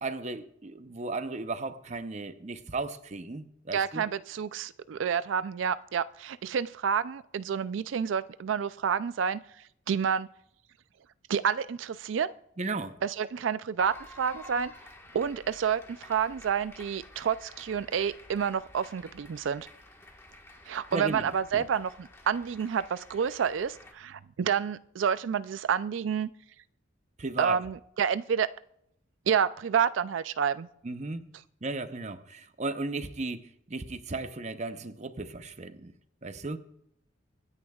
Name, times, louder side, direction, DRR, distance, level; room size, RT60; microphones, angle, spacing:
voice 1, 0.0-4.0 12.6-13.0 20.9-21.2 21.5-21.6 27.2-27.6 30.8-31.2 31.6-35.9 36.2-36.6, right 3 dB, 40° right, 0.7 m, -35 dB
voice 2, 3.7-9.4 9.9-10.3 11.3-12.3 13.0-14.7 15.1-19.7 20.7-26.3 27.4-28.5 29.3-30.7, right 7 dB, 85° right, 0.4 m, -29 dB
sound 1, 13.8-23.9, left 2 dB, 15° left, 1.3 m, -51 dB
24.5 x 9.9 x 2.3 m
head